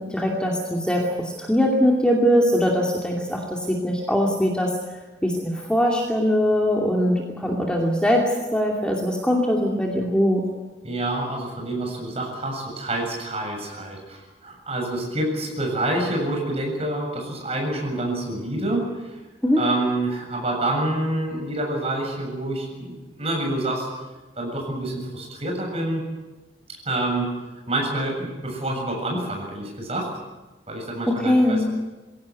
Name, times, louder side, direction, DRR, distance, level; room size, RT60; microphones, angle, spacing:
voice 1, 0.0-4.7 5.2-10.4 19.4-19.6 31.1-31.6, equal, 5° left, -1 dB, 2.5 m, -21 dB
voice 2, 10.8-19.0 19.6-23.9 24.4-26.1 26.9-27.4 27.7-30.1 30.7-31.7, right 1 dB, 35° right, 1 dB, 7.6 m, -27 dB
22.5 x 17.0 x 9.5 m, 1.2 s
head